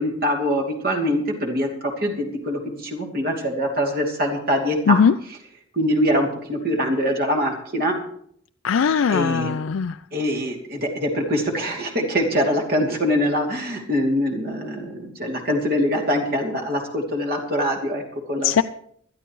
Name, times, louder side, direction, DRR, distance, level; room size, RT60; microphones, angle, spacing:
voice 1, 0.0-5.0 5.7-8.0 9.1-9.6 10.1-18.6, equal, 50° right, 1 dB, 2.8 m, -23 dB
voice 2, 8.6-10.0 18.4-18.6, left 6 dB, 85° left, 9 dB, 0.4 m, -19 dB
20.5 x 12.5 x 3.1 m, 0.66 s
head